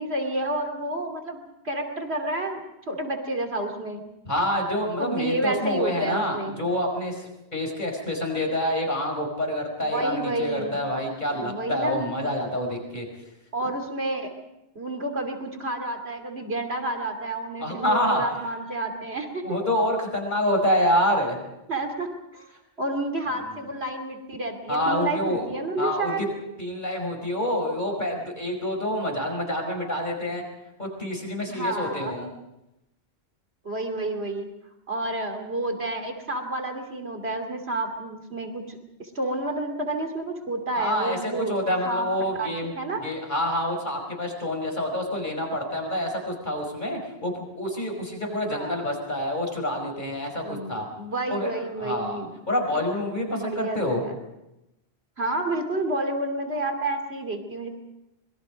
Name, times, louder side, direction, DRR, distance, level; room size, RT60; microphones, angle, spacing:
voice 1, 0.0-1.4 1.6-4.0 5.0-6.6 9.8-10.7 11.3-12.0 13.5-14.3 14.7-19.4 21.7-22.1 22.3-22.5 22.8-26.2 31.5-32.2 33.6-34.5 34.9-41.6 41.8-42.1 42.4-42.5 42.8-43.0 48.5-48.8 50.4-52.3 53.3-54.1 55.2-57.7, right 2 dB, 70° right, 4 dB, 3.1 m, -30 dB
voice 2, 4.3-13.1 17.6-18.2 19.4-21.4 23.5-23.7 24.7-25.5 25.8-26.2 26.6-30.5 30.8-32.3 40.7-42.7 43.0-50.9 51.3-51.5 51.8-52.2 52.5-54.0, left 1 dB, 45° left, 2 dB, 5.4 m, -27 dB
25.5 x 22.0 x 5.2 m, 0.92 s
omnidirectional pair, 1.1 m